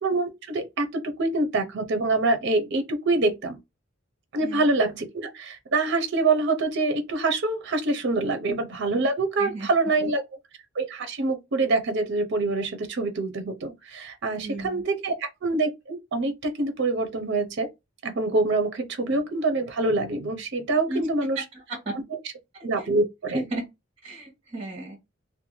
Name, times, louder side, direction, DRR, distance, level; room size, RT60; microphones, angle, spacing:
voice 1, 0.0-3.6 4.3-10.2 10.7-17.7 18.0-21.4 21.9-22.0 22.6-23.4, right 3 dB, 60° right, 0.6 m, -25 dB
voice 2, 9.4-9.7 14.3-14.8 20.9-21.1 21.5-21.9 22.8-22.9 23.3-23.7 24.0-25.0, right 2 dB, 30° right, 1.1 m, -34 dB
2.5 x 2.1 x 3.0 m
head